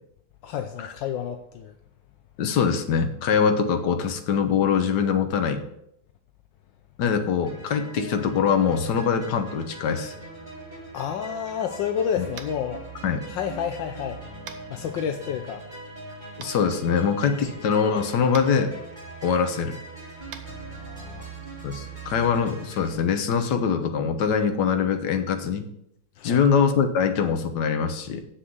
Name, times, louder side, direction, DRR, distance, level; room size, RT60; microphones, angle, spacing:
voice 1, 0.4-1.7 10.9-12.8 13.3-14.2 14.7-15.7 20.5-21.3 26.2-26.4, left 8 dB, 80° left, 7 dB, 1.4 m, -30 dB
voice 2, 2.4-5.6 7.0-10.1 12.2-12.3 13.0-13.2 16.4-18.7 19.2-19.8 21.6-25.7 26.2-28.2, left 6 dB, 65° left, 7 dB, 1.5 m, -23 dB
sound 1, 7.4-22.9, right 2 dB, 20° right, 3.6 m, -41 dB
Tap, 12.3-12.6 14.4-14.6 16.4-16.5 18.3-18.5 20.3-20.4, right 7 dB, 80° right, 1.7 m, -39 dB
7.6 x 6.4 x 7.9 m, 0.78 s
omnidirectional pair, 2.1 m